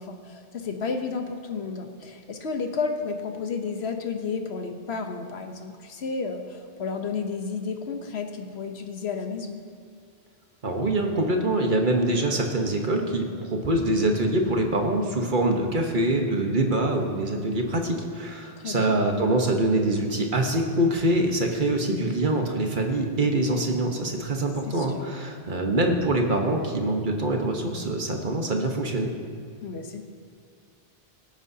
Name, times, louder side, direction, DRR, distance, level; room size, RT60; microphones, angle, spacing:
voice 1, 0.0-9.6 18.6-19.0 24.7-25.0 29.6-30.0, left 5 dB, 90° left, 5 dB, 1.2 m, -32 dB
voice 2, 10.6-29.1, right 1 dB, 55° right, 3 dB, 1.3 m, -24 dB
22.5 x 8.8 x 2.8 m, 2.2 s
omnidirectional pair, 1.0 m